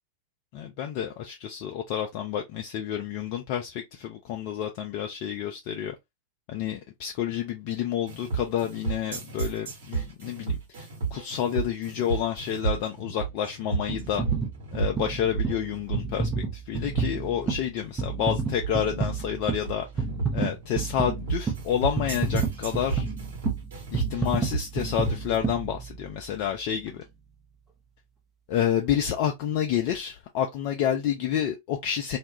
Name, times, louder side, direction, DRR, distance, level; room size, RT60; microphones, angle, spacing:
voice 1, 0.5-6.0 6.5-14.2 14.7-20.0 20.3-23.1 23.9-27.0 28.5-32.2, left 9 dB, 45° left, 0.4 m, -29 dB
sound 1, 8.1-25.4, right 5 dB, 60° right, 1.1 m, -33 dB
sound 2, 13.9-26.3 26.9-27.0, right 4 dB, 20° right, 0.7 m, -31 dB
2.3 x 2.1 x 2.8 m
figure-of-eight pair, 90°, 0 cm